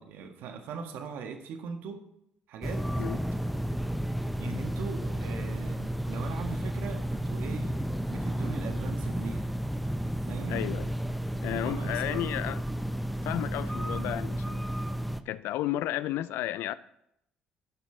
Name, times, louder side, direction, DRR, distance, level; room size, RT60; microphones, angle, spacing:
voice 1, 0.0-2.0 2.5-2.9 4.4-7.7 8.1-9.5 10.2-10.6 11.5-12.3, right 5 dB, 70° right, 1.5 m, -40 dB
sound 1, 2.6-15.2, right 1 dB, ahead, 0.7 m, -32 dB
voice 2, 10.5-11.0 11.4-12.6 13.2-14.6 15.3-16.7, left 14 dB, 70° left, 0.4 m, -32 dB
15.5 x 6.0 x 3.3 m
hypercardioid pair, 60°, 4 cm